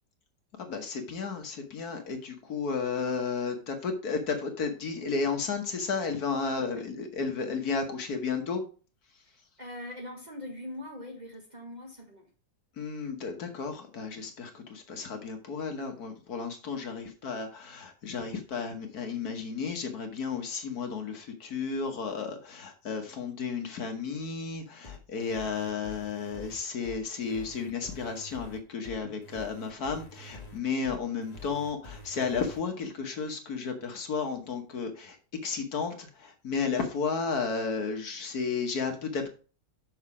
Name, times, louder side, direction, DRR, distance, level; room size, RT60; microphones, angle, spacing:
voice 1, 0.6-8.6 12.8-35.2 35.4-39.3, left 5 dB, 60° left, 5 dB, 1.6 m, -33 dB
voice 2, 9.6-12.3, left 1 dB, 25° right, 1 dB, 1.3 m, -42 dB
sound 1, 24.8-32.6, left 2 dB, 25° left, 1.3 m, -46 dB
6.4 x 6.0 x 4.8 m, 0.37 s
omnidirectional pair, 1.9 m